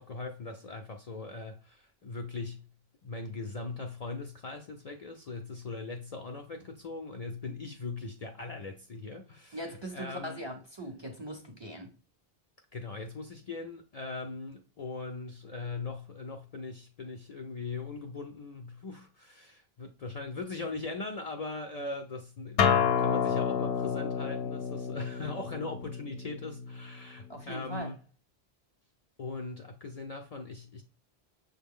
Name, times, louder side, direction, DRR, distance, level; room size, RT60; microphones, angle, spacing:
voice 1, 0.0-2.7 3.0-10.4 12.7-22.7 23.0-28.0 29.2-30.8, left 3 dB, 50° left, 0.5 m, -40 dB
voice 2, 9.5-11.9 27.3-27.9, right 1 dB, 30° right, 0.6 m, -40 dB
Acoustic guitar, 22.6-27.8, left 7 dB, 75° left, 0.8 m, -30 dB
6.4 x 2.2 x 3.5 m
omnidirectional pair, 1.1 m